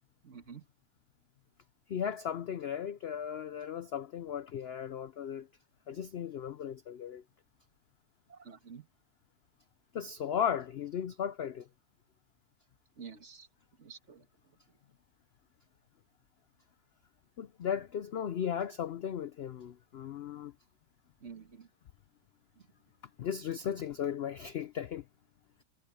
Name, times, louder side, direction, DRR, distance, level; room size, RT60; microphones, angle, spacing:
voice 1, 0.2-0.6 8.3-8.9 13.0-13.5 13.8-14.2 21.2-21.7, right 6 dB, 45° right, 2.0 m, -49 dB
voice 2, 1.9-5.5 5.9-7.2 9.9-11.7 17.4-20.5 23.2-25.0, left 8 dB, 65° left, 0.6 m, -36 dB
omnidirectional pair, 1.7 m